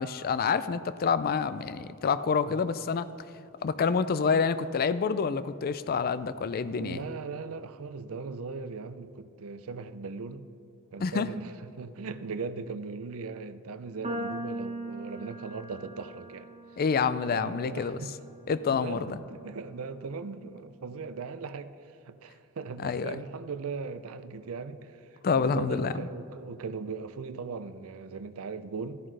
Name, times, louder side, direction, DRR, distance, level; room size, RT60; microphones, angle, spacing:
voice 1, 0.0-3.1 3.6-7.0 11.0-11.3 16.8-18.0 18.5-19.1 22.8-23.2 25.2-26.1, left 5 dB, 45° left, 0.4 m, -27 dB
voice 2, 6.7-10.5 10.9-16.5 17.3-18.2 18.7-29.0, right 4 dB, 70° right, 0.5 m, -39 dB
sound 1, 14.0-20.4, right 1 dB, 30° right, 1.1 m, -41 dB
13.5 x 11.0 x 3.3 m
head